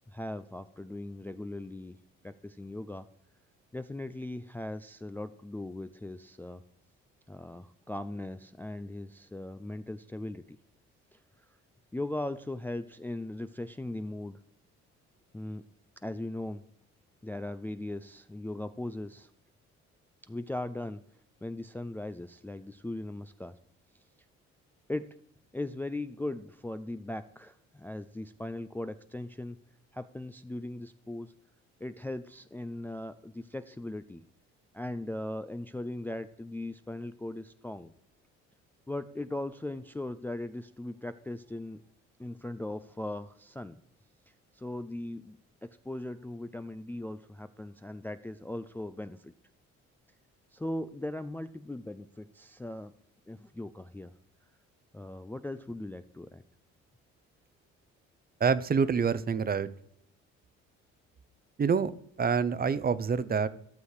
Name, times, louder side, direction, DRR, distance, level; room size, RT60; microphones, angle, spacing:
voice 1, 0.1-2.0 2.2-3.1 3.7-6.6 7.3-10.6 11.1-11.2 11.9-14.4 15.3-15.6 16.0-16.6 17.2-19.3 20.3-21.0 21.4-23.5 24.9-25.1 25.5-29.6 29.9-31.3 31.8-34.3 34.7-37.9 38.9-41.8 42.2-43.8 44.5-45.4 45.6-49.3 50.5-52.9 53.3-54.1 54.9-56.4, left 1 dB, 5° left, 10 dB, 0.4 m, -39 dB
voice 2, 58.4-59.7 61.6-61.9 62.2-63.5, right 6 dB, 30° right, 15 dB, 0.7 m, -26 dB
12.5 x 6.4 x 4.8 m, 0.71 s
supercardioid pair, 75°, 29 cm